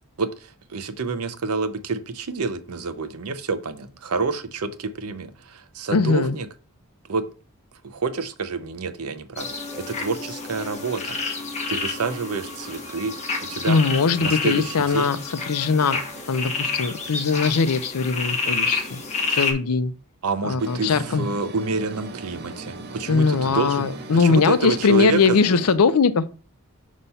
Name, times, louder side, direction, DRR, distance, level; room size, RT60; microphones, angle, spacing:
voice 1, 0.2-6.5 7.1-7.3 7.8-9.5 9.7-11.2 11.7-13.8 14.2-15.1 20.2-23.9 24.2-25.4, right 4 dB, 80° right, 0.7 m, -28 dB
voice 2, 5.9-6.4 13.7-15.2 15.5-16.0 16.3-19.0 19.3-19.9 20.4-21.2 23.1-26.3, left 4 dB, 85° left, 0.6 m, -20 dB
sound 1, 9.4-19.5, left 4 dB, 30° left, 1.1 m, -29 dB
sound 2, 20.6-25.8, right 2 dB, 45° right, 0.8 m, -38 dB
5.5 x 3.1 x 5.5 m
head